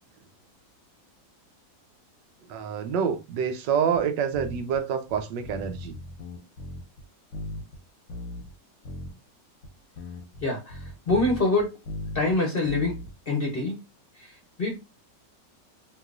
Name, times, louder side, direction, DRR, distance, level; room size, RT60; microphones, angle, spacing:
voice 1, 2.5-6.0, right 7 dB, 80° right, 1.3 m, -27 dB
sound 1, 3.9-4.0 4.3-4.8 5.1-7.0 7.3-7.8 8.1-8.5 8.8-9.1 9.6-9.7 10.0-12.4 12.6-13.1, left 1 dB, 90° left, 1.7 m, -38 dB
voice 2, 10.4-11.8 12.1-12.9 13.3-13.8 14.2-14.3 14.6-14.8, left 2 dB, 40° left, 0.9 m, -25 dB
3.7 x 2.9 x 2.4 m
omnidirectional pair, 1.9 m